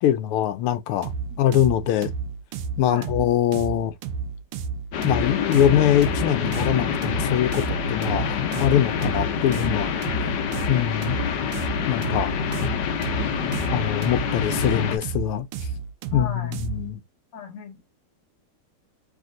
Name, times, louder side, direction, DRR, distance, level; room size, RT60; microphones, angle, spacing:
voice 1, 0.0-1.1 1.4-2.1 2.8-3.9 5.0-9.9 10.7-11.2 11.9-12.3 12.6-12.8 13.7-15.5 16.1-17.0, left 11 dB, 80° left, 1.5 m, -23 dB
sound 1, 1.0-16.9, right 6 dB, 90° right, 1.6 m, -32 dB
sound 2, 4.9-15.0, left 7 dB, 65° left, 1.2 m, -27 dB
voice 2, 16.1-16.6 17.3-17.8, left 6 dB, 45° left, 1.4 m, -38 dB
3.5 x 3.3 x 3.7 m
omnidirectional pair, 2.4 m